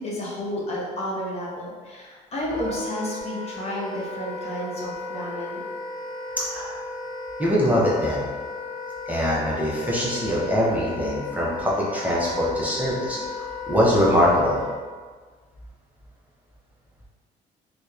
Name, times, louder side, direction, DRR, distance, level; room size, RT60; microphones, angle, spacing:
voice 1, 0.0-5.6, equal, 40° left, -4 dB, 0.6 m, -31 dB
Wind instrument woodwind instrument, 2.5-14.8, left 3 dB, 65° right, 0.6 m, -35 dB
voice 2, 6.4-6.8 7.4-8.3 9.1-14.6, equal, 10° right, -7 dB, 0.5 m, -23 dB
2.7 x 2.1 x 2.3 m, 1.5 s
cardioid pair, 110°, 17 cm